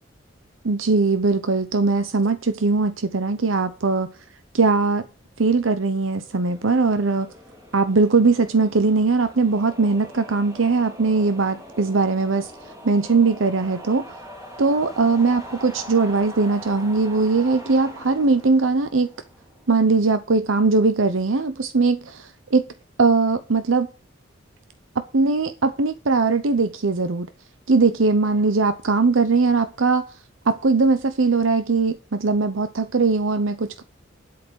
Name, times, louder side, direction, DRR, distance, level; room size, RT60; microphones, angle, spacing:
voice 1, 0.6-4.1 4.5-5.1 5.4-7.3 7.7-14.0 14.6-19.1 19.7-22.6 23.0-23.9 25.1-27.3 27.7-30.2 30.4-33.8, right 4 dB, 90° right, 0.8 m, -20 dB
sound 1, 5.8-20.0, equal, 15° right, 2.4 m, -42 dB
10.5 x 8.4 x 6.3 m
head